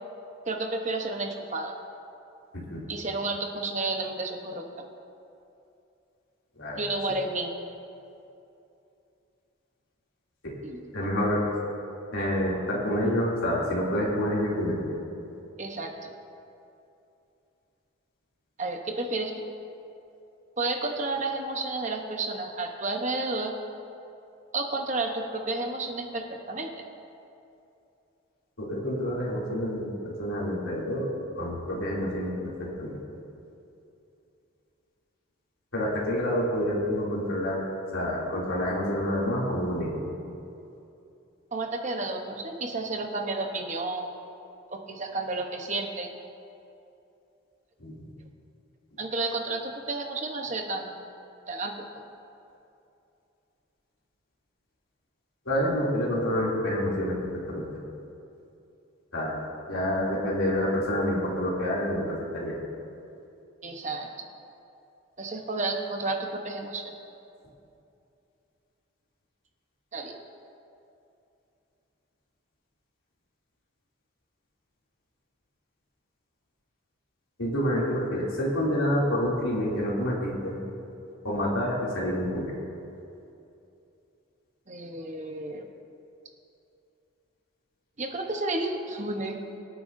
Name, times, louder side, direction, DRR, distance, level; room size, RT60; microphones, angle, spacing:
voice 1, 0.5-1.7 2.9-4.6 6.7-7.6 10.6-10.8 15.6-16.1 18.6-19.4 20.6-23.6 24.5-26.7 41.5-44.1 44.7-46.2 49.0-50.9 51.5-52.0 63.6-64.3 65.2-66.9 69.9-70.2 84.7-85.7 88.0-89.4, right 2 dB, 35° right, 3 dB, 1.0 m, -31 dB
voice 2, 10.9-11.4 12.1-14.9 28.6-31.1 31.4-32.3 32.6-33.0 35.7-37.6 37.9-40.0 47.8-48.0 55.4-57.1 57.5-57.7 59.1-59.4 59.7-62.6 77.4-80.6 81.2-82.5, equal, 70° left, -5 dB, 2.9 m, -28 dB
24.0 x 9.0 x 2.7 m, 2.7 s
head